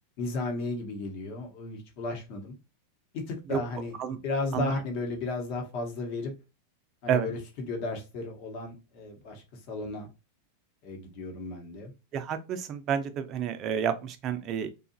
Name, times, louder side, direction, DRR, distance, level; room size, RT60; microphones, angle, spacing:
voice 1, 0.2-2.5 3.1-3.9 4.2-6.3 7.0-10.1 10.8-11.9, left 3 dB, 55° left, 1.0 m, -34 dB
voice 2, 12.1-14.7, right 8 dB, 40° right, 0.5 m, -29 dB
2.7 x 2.3 x 2.6 m
hypercardioid pair, 115°, 0 cm